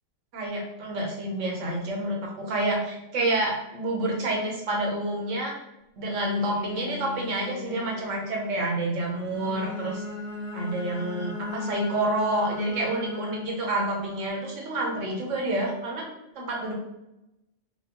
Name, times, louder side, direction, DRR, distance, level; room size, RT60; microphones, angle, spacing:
voice 1, 0.3-5.5 6.0-10.0 10.5-16.1 16.3-16.7, right 2 dB, 75° right, -1 dB, 1.2 m, -28 dB
Bowed string instrument, 6.1-11.1, left 4 dB, 25° left, 1.1 m, -43 dB
Bowed string instrument 2, 9.2-13.7, left 2 dB, 45° left, 0.7 m, -35 dB
5.1 x 2.0 x 2.8 m, 0.89 s
omnidirectional pair, 1.3 m